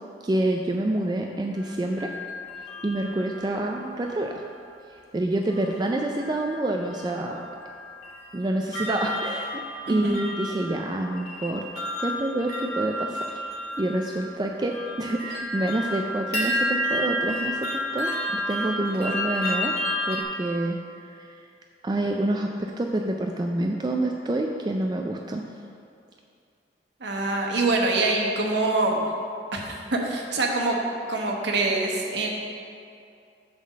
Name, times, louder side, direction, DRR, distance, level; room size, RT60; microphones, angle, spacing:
voice 1, 0.2-2.1 2.8-4.3 4.9-7.5 8.3-9.6 9.9-13.2 13.8-17.7 17.9-19.7 20.1-20.8 21.1-21.3 21.8-25.4, right 1 dB, 25° right, 2 dB, 0.3 m, -27 dB
sound 1, 1.6-4.3 5.5-5.9 6.2-20.2, equal, 60° left, 1.7 m, -32 dB
voice 2, 9.8-10.2 27.0-29.0 29.5-30.8 31.1-32.3, right 2 dB, 70° right, 0 dB, 1.1 m, -25 dB
8.6 x 3.9 x 6.4 m, 2.5 s
head